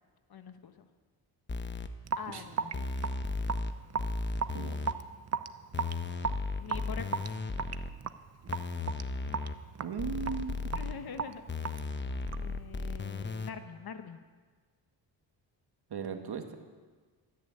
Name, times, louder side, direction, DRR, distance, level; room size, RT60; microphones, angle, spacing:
voice 1, 0.3-0.9 2.1-2.9 3.3-3.6 6.6-7.4 10.7-11.4 12.3-14.2, left 6 dB, 45° left, 9 dB, 1.2 m, -44 dB
sound 1, 1.5-1.9 2.7-3.7 4.0-4.9 5.7-7.9 8.5-9.6 10.0-10.9 11.5-13.5, left 3 dB, 20° left, 1.0 m, -35 dB
Raindrop / Drip, 2.1-12.6, right 6 dB, 30° right, 0.7 m, -37 dB
voice 2, 9.8-10.6 15.9-16.5, right 6 dB, 50° right, 5 dB, 1.9 m, -37 dB
13.5 x 10.5 x 8.6 m, 1.4 s
cardioid pair, 85°, 50 cm